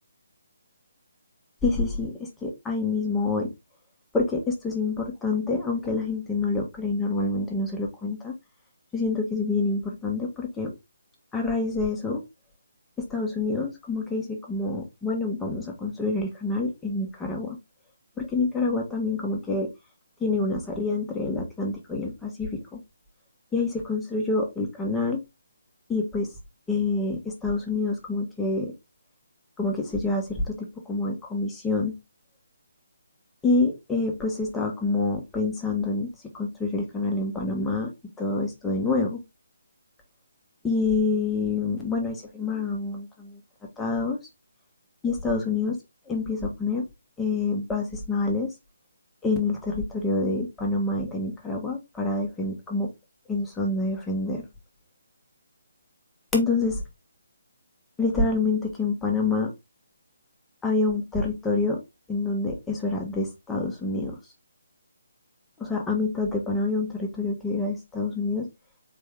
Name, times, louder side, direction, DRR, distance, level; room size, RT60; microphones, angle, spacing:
voice 1, 1.6-3.5 4.1-8.3 8.9-10.7 11.3-12.2 13.1-17.6 18.2-19.7 20.2-22.8 23.5-25.2 25.9-26.3 26.7-28.7 29.6-32.0 33.4-36.1 36.3-37.9 38.2-39.2 40.6-43.4 43.8-44.2 45.0-45.8 46.1-46.8 47.2-48.5 49.2-52.9 53.3-54.4 56.3-56.7 58.0-59.5 60.6-61.8 62.1-64.2 65.6-68.5, left 3 dB, 10° left, 0 dB, 1.2 m, -27 dB
4.4 x 3.4 x 3.5 m, 0.22 s
figure-of-eight pair, 145°, 0 cm